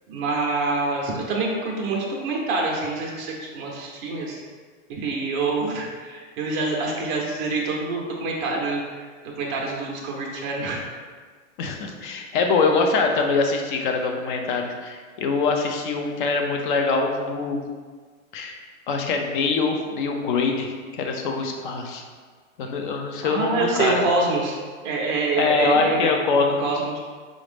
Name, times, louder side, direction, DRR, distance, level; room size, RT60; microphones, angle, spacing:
voice 1, 0.1-4.4 4.9-9.1 9.4-10.8 23.2-24.5 24.8-26.2 26.6-27.0, right 3 dB, 25° right, -1 dB, 0.6 m, -26 dB
voice 2, 11.6-17.6 18.3-18.6 18.9-22.0 22.6-24.0 25.4-26.7, left 4 dB, 40° left, 3 dB, 0.4 m, -23 dB
4.9 x 2.0 x 3.3 m, 1.6 s
hypercardioid pair, 140°, 41 cm